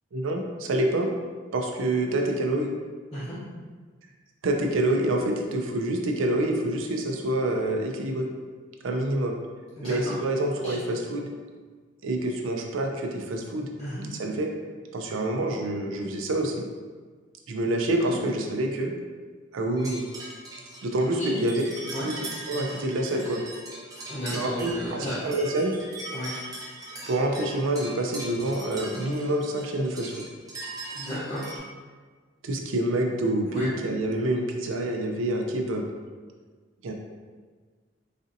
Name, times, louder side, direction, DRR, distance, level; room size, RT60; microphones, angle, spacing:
voice 1, 0.1-1.1 1.5-2.7 4.4-8.3 8.8-9.4 9.8-11.3 12.0-13.7 14.2-14.5 14.9-16.7 17.5-18.9 19.5-20.0 20.8-21.6 22.0-22.2 22.5-23.4 24.3-25.7 27.1-30.1 32.4-35.8 36.8-36.9, right 1 dB, 85° right, 2 dB, 0.5 m, -27 dB
voice 2, 9.8-10.2 10.6-10.8 13.8-14.0 18.0-18.2 21.2-21.4 21.9-22.1 23.9-25.2 26.1-26.3 30.9-31.5 33.5-33.7, equal, 30° left, -12 dB, 0.7 m, -34 dB
sound 1, 19.8-31.6, right 2 dB, 20° right, 0.6 m, -40 dB
4.1 x 2.7 x 2.6 m, 1.5 s
head